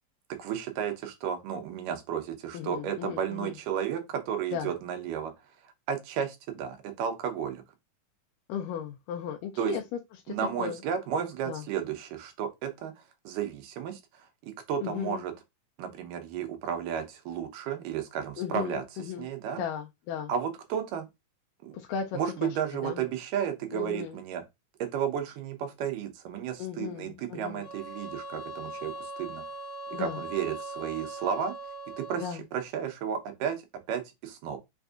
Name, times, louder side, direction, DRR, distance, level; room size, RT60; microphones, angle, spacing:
voice 1, 0.4-5.3 5.9-7.6 9.6-9.8 10.3-15.3 15.8-18.8 19.2-19.6 20.3-21.1 21.6-21.7 22.1-24.4 24.8-29.4 29.9-31.5 32.0-33.6 33.9-34.6, right 8 dB, 90° right, 2.4 m, -33 dB
voice 2, 2.5-3.5 4.5-4.7 8.5-9.8 10.3-10.8 11.5-11.6 14.8-15.2 18.4-19.3 19.6-20.3 21.7-22.6 22.8-23.0 23.7-24.2 26.6-27.7 29.9-30.2 32.2-32.4, left 8 dB, 85° left, 2.1 m, -36 dB
sound 1, 27.6-32.4, right 1 dB, 40° right, 1.0 m, -40 dB
5.7 x 2.6 x 2.3 m
omnidirectional pair, 3.8 m